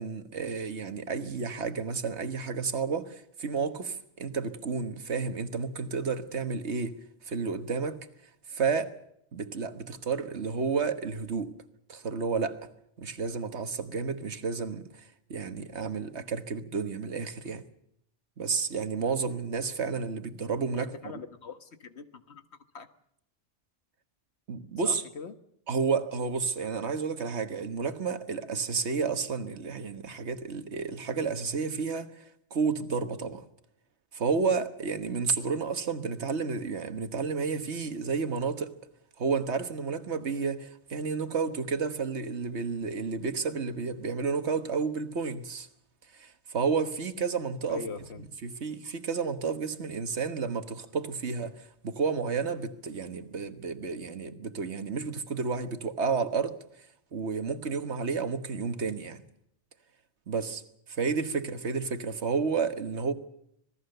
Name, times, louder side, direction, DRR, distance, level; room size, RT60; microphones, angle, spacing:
voice 1, 0.0-8.0 8.5-8.9 9.3-11.5 11.9-12.7 13.0-17.6 18.4-20.9 24.5-25.0 25.7-33.4 34.1-38.8 39.2-45.7 46.1-47.8 48.4-59.2 60.3-60.6 60.9-63.1, right 5 dB, 70° right, 1.7 m, -31 dB
voice 2, 20.7-22.4 22.7-22.9 24.8-25.4 47.7-48.2, left 5 dB, 65° left, 1.7 m, -41 dB
26.5 x 18.5 x 6.7 m
omnidirectional pair, 1.2 m